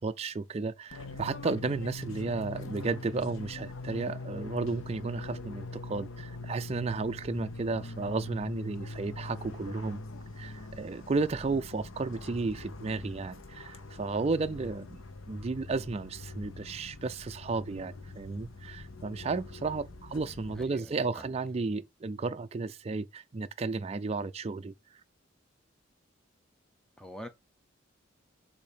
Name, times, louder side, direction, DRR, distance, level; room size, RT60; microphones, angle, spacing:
voice 1, 0.0-10.0 10.4-24.7, right 3 dB, 30° right, 0.4 m, -33 dB
Fixed-wing aircraft airplane, 0.9-20.6, left 2 dB, 85° left, 0.9 m, -43 dB
voice 2, 20.6-21.3 27.0-27.3, equal, 5° left, 0.7 m, -45 dB
7.0 x 2.7 x 5.0 m
head